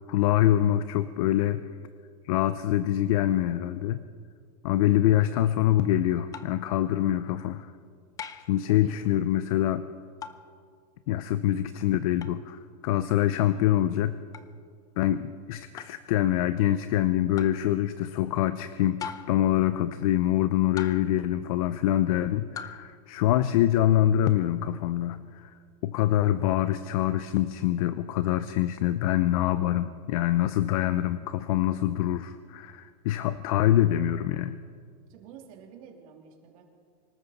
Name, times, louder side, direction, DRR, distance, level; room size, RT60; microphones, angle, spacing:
voice 1, 0.1-1.6 2.2-4.0 4.6-7.7 8.5-9.9 11.1-14.2 15.0-25.5 25.8-34.6, left 12 dB, 60° left, 13 dB, 0.6 m, -25 dB
sound 1, 6.3-6.7 8.2-8.6 10.2-10.5 12.2-12.4 14.3-14.5 15.8-16.0 17.4-17.6 19.0-19.5 20.8-21.2 22.6-22.9, left 7 dB, 15° left, 0.5 m, -40 dB
voice 2, 35.1-36.6, right 8 dB, 55° right, 2 dB, 2.9 m, -49 dB
25.0 x 13.5 x 4.2 m, 2.1 s
supercardioid pair, 150°, 21 cm